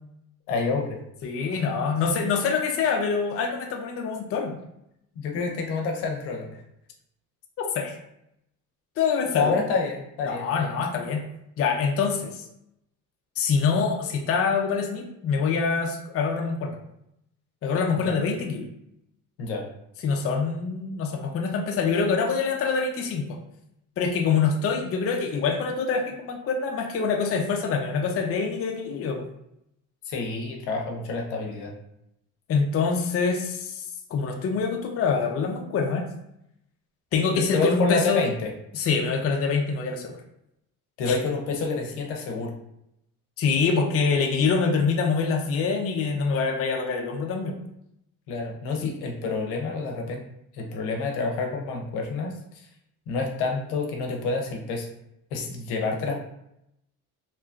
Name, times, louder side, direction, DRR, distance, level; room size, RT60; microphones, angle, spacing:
voice 1, 0.5-1.0 5.2-6.6 9.3-10.8 17.9-18.1 19.4-19.6 30.1-31.7 37.3-38.5 41.0-42.5 48.3-50.2 50.5-52.7 53.1-54.9 55.3-56.2, left 4 dB, 75° left, 2 dB, 0.7 m, -28 dB
voice 2, 1.2-4.5 7.6-8.0 9.0-9.5 10.2-11.2 11.6-12.5 13.4-16.8 17.6-18.7 20.0-23.2 24.0-29.3 32.5-36.1 37.1-38.3 38.7-40.2 41.1-41.2 43.4-47.6 48.8-48.9, left 5 dB, 35° left, 2 dB, 0.5 m, -25 dB
2.8 x 2.2 x 2.4 m, 0.79 s
supercardioid pair, 75°, 40 cm